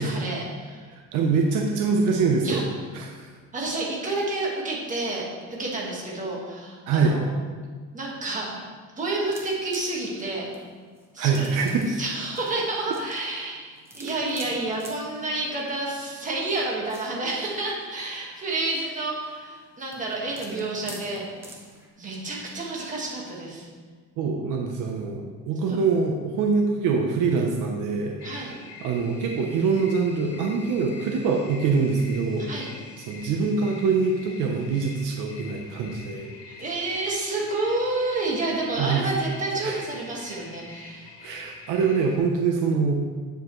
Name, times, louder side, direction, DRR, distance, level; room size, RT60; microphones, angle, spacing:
voice 1, 0.0-0.8 2.4-2.6 3.5-7.3 7.9-8.7 9.0-10.5 11.1-11.5 11.9-21.2 22.0-23.7 25.7-25.8 28.2-28.5 32.4-32.7 36.5-41.1, right 2 dB, 20° right, -3 dB, 1.7 m, -29 dB
voice 2, 0.9-2.6 2.9-3.3 6.9-7.2 11.2-11.9 24.2-28.4 28.8-32.5 33.1-36.3 38.8-39.0 39.6-39.8 41.2-42.9, right 5 dB, 65° right, 1 dB, 0.9 m, -24 dB
sound 1, 9.3-21.9, right 1 dB, 5° right, 0.8 m, -47 dB
sound 2, 28.2-42.2, left 4 dB, 40° left, 1.1 m, -45 dB
9.2 x 7.5 x 3.2 m, 1.5 s
cardioid pair, 175°, 34 cm